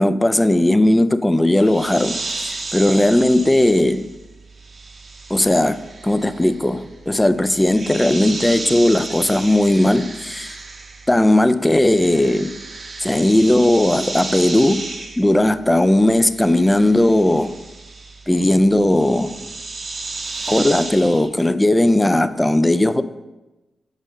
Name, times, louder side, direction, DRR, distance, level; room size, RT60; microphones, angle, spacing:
voice 1, 0.0-4.1 5.3-10.6 11.1-12.6 13.0-17.5 18.3-19.4 20.5-23.0, left 1 dB, 15° left, 0.4 m, -17 dB
sound 1, 1.6-11.3 11.6-21.3, right 3 dB, 50° right, 0.7 m, -33 dB
6.4 x 5.2 x 3.7 m
cardioid pair, 55°, 0 cm